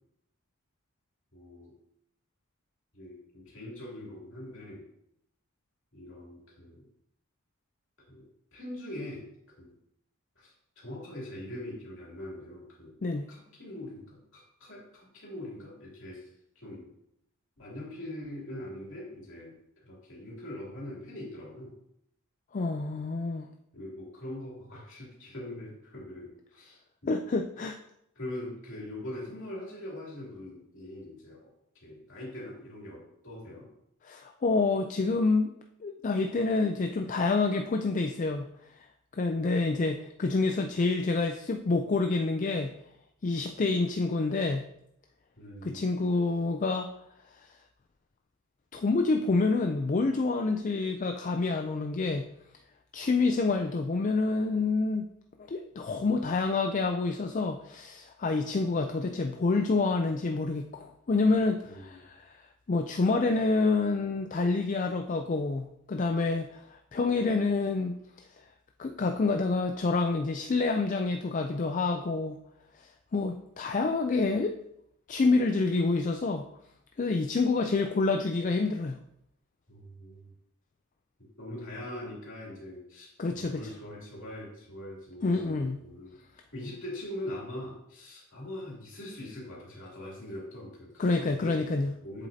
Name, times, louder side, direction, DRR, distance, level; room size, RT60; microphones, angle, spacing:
voice 1, 1.3-1.7 2.9-4.8 5.9-6.8 8.1-8.2 8.5-9.3 9.6-9.7 10.4-12.9 13.3-16.2 16.5-16.9 17.6-19.5 19.8-21.7 23.7-27.1 28.2-31.5 31.8-33.7 45.4-45.8 61.6-62.0 79.7-80.3 81.4-86.1 86.5-91.6 92.0-92.3, left 1 dB, 60° left, -4 dB, 2.9 m, -42 dB
voice 2, 22.5-23.5 27.1-27.8 34.0-35.5 35.8-38.5 38.7-38.9 39.1-42.7 43.2-44.6 45.6-46.9 48.7-52.2 52.9-55.1 55.5-62.3 62.7-68.0 68.8-72.4 72.8-74.6 75.1-76.4 77.0-79.0 83.2-83.6 85.2-85.8 91.0-91.9, left 3 dB, 35° left, 5 dB, 0.4 m, -27 dB
8.1 x 7.2 x 2.8 m, 0.76 s
head